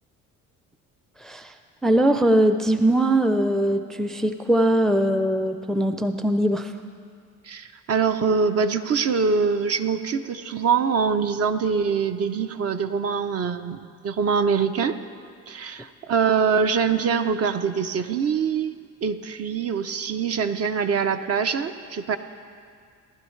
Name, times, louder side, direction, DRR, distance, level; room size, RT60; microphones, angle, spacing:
voice 1, 1.2-1.5 1.8-6.7, right 1 dB, ahead, 8 dB, 0.5 m, -21 dB
voice 2, 7.4-15.0 15.5-22.2, right 6 dB, 45° right, 9 dB, 0.7 m, -24 dB
18.0 x 12.0 x 3.2 m, 2.1 s
supercardioid pair, 75°, 35 cm